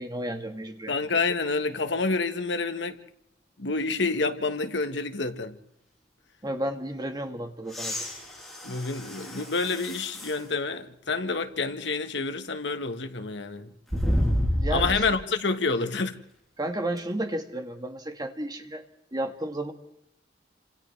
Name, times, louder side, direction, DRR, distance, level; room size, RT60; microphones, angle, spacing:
voice 1, 0.0-0.9 6.4-8.1 14.5-15.0 16.6-18.8 19.1-19.7, right 1 dB, 20° right, 1.7 m, -32 dB
voice 2, 0.9-3.0 3.6-5.6 8.6-13.7 14.7-16.1, left 3 dB, 70° left, 1.5 m, -28 dB
sound 1, 7.7-10.4 11.1-11.2 13.9-15.1 17.0-17.1, equal, ahead, 8.0 m, -29 dB
29.5 x 26.5 x 3.4 m
head